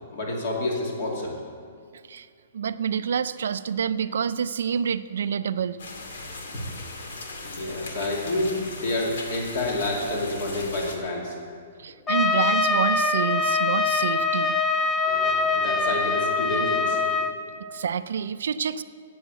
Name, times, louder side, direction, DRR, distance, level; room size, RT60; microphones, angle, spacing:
voice 1, 0.1-1.3 6.5-6.6 7.4-11.4 15.0-17.2, left 2 dB, 40° left, -1 dB, 2.5 m, -29 dB
voice 2, 2.5-5.8 11.8-14.5 17.7-18.8, right 7 dB, 70° right, 13 dB, 0.4 m, -27 dB
sound 1, 5.8-11.0, left 2 dB, 80° left, 2.1 m, -38 dB
Trumpet, 12.1-17.4, left 3 dB, 10° left, 0.4 m, -23 dB
11.0 x 8.7 x 7.9 m, 2.2 s
hypercardioid pair, 180°, 0 cm